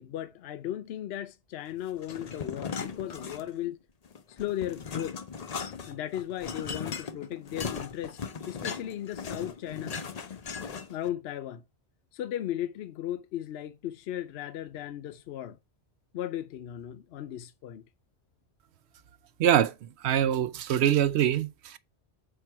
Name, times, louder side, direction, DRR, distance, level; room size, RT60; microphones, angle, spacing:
voice 1, 0.0-3.8 4.4-5.2 5.9-10.2 10.9-11.6 12.1-15.6 16.1-17.8, left 12 dB, 75° left, 0.8 m, -36 dB
sound 1, 2.0-3.7 4.1-11.1, left 6 dB, 45° left, 0.6 m, -38 dB
voice 2, 19.4-19.7 20.0-21.8, right 10 dB, 75° right, 0.9 m, -24 dB
6.7 x 4.5 x 4.5 m
omnidirectional pair, 1.1 m